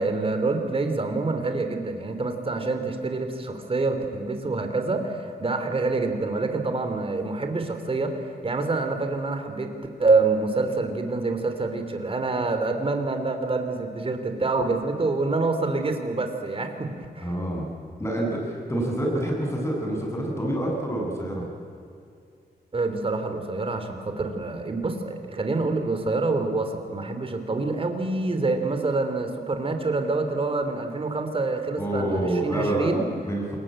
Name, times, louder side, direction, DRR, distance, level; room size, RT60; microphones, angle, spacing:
voice 1, 0.0-9.7 10.0-17.4 22.7-33.1, right 3 dB, 35° right, 6 dB, 3.2 m, -26 dB
voice 2, 17.2-17.7 18.0-21.4 31.8-32.9 33.3-33.6, right 1 dB, 15° left, -1 dB, 7.9 m, -27 dB
28.0 x 22.0 x 9.0 m, 2.4 s
wide cardioid pair, 130°, 17 cm